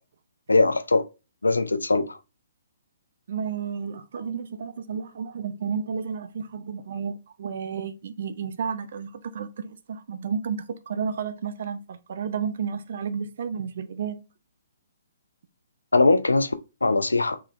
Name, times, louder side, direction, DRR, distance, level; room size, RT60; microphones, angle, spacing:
voice 1, 0.5-1.0 1.4-2.2 15.9-16.6 16.8-17.4, left 3 dB, 75° left, 0.4 m, -21 dB
voice 2, 3.3-14.2, right 6 dB, 50° right, 0.5 m, -32 dB
3.7 x 3.1 x 2.4 m
figure-of-eight pair, 125°, 0 cm